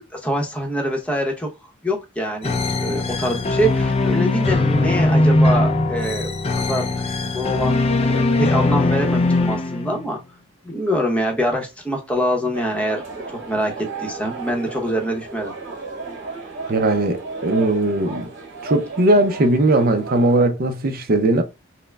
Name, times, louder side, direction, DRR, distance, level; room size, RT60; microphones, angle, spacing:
voice 1, 0.1-10.2 10.6-13.0 13.3-13.7 14.0-15.5, equal, 5° left, 0.8 m, -25 dB
sound 1, 2.4-10.1, left 2 dB, 30° left, 0.5 m, -20 dB
sound 2, 12.5-20.4, right 4 dB, 65° right, 1.4 m, -34 dB
voice 2, 16.7-18.3 18.6-21.4, right 2 dB, 50° right, 0.5 m, -18 dB
5.5 x 2.1 x 2.3 m
head